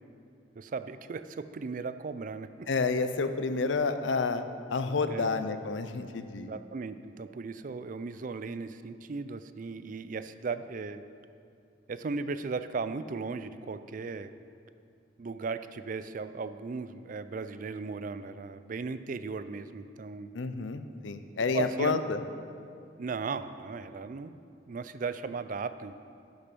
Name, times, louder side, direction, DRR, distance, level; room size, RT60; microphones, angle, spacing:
voice 1, 0.6-2.7 5.1-5.4 6.5-11.0 11.9-14.3 15.2-20.3 21.5-22.0 23.0-24.3 24.7-25.9, right 4 dB, 45° right, 12 dB, 0.4 m, -36 dB
voice 2, 2.7-6.5 20.3-22.2, left 4 dB, 80° left, 10 dB, 0.6 m, -30 dB
10.5 x 6.7 x 6.0 m, 2.5 s
head